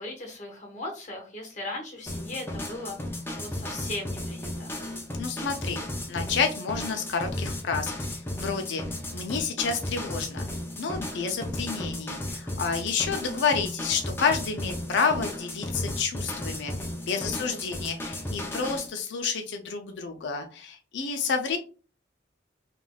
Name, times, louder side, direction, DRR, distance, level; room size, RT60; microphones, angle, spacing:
voice 1, 0.0-4.8 17.1-17.7, left 2 dB, 40° left, 1 dB, 0.9 m, -38 dB
sound 1, 2.1-18.9, left 1 dB, 10° left, 0.5 m, -34 dB
voice 2, 5.2-5.8 6.1-8.8 9.1-10.4 10.8-16.7 17.1-21.6, left 5 dB, 75° left, 4 dB, 0.4 m, -29 dB
3.2 x 2.5 x 2.2 m, 0.35 s
head